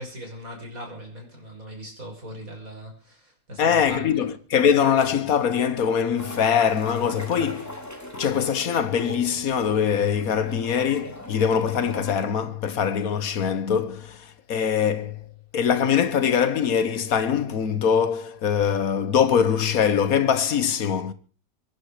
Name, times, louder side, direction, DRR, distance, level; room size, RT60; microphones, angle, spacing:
voice 1, 0.0-4.3, equal, 70° right, 6.4 m, -39 dB
voice 2, 3.6-7.8 8.1-15.2 15.5-21.1, left 7 dB, 75° left, 1.7 m, -23 dB
sound 1, 6.2-12.1, equal, 10° left, 2.3 m, -39 dB
24.5 x 11.0 x 5.0 m
omnidirectional pair, 1.5 m